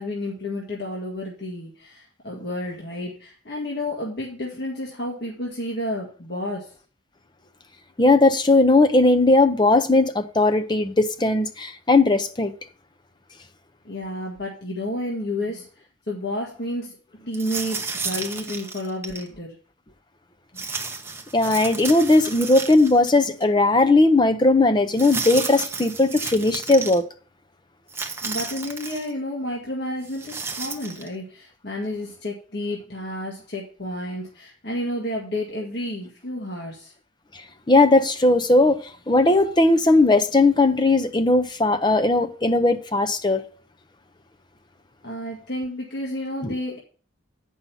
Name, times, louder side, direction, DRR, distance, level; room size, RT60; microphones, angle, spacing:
voice 1, 0.0-6.7 13.8-15.7 16.1-19.6 20.5-20.6 28.2-36.9 45.0-46.8, left 1 dB, 55° left, 1.9 m, -31 dB
voice 2, 8.0-12.5 21.3-27.0 37.7-38.8 39.1-43.4 46.4-46.5, left 2 dB, 20° left, 0.7 m, -18 dB
sound 1, 17.3-19.3 20.6-23.1 23.4-23.5 24.9-27.0 27.9-29.1 30.1-31.1, right 4 dB, 10° right, 0.8 m, -32 dB
8.7 x 5.6 x 5.7 m
head